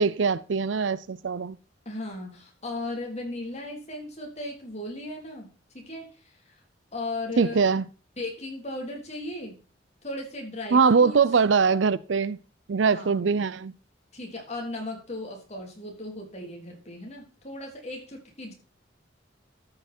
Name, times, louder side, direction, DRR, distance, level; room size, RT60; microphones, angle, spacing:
voice 1, 0.0-1.6 7.4-7.8 10.7-12.4 12.7-13.7, right 5 dB, 85° right, 0.5 m, -22 dB
voice 2, 1.9-5.5 5.7-6.6 6.9-7.7 8.2-9.6 10.0-11.2 12.9-13.3 14.1-18.5, left 2 dB, 35° left, 3.5 m, -36 dB
13.0 x 5.9 x 4.4 m
head